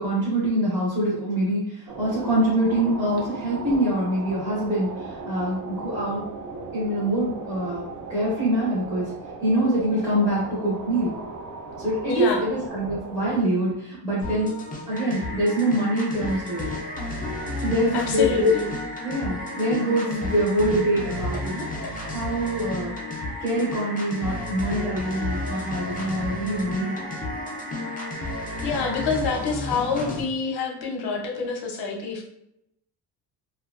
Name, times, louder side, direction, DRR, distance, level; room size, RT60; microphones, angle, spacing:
voice 1, 0.0-6.3 6.7-9.1 9.4-11.1 11.8-16.7 17.6-18.5 19.0-21.7 22.1-22.9 23.4-27.1, right 1 dB, 10° right, -8 dB, 0.7 m, -25 dB
sound 1, 1.9-13.4, right 3 dB, 45° right, 0.5 m, -37 dB
voice 2, 12.1-12.4 17.9-18.7 28.6-32.2, left 5 dB, 60° left, 1 dB, 0.7 m, -27 dB
sound 2, 14.2-30.2, left 2 dB, 20° left, 0.4 m, -33 dB
sound 3, 14.9-29.2, right 2 dB, 75° right, 0.8 m, -39 dB
2.6 x 2.3 x 2.4 m, 0.81 s
cardioid pair, 145°, 44 cm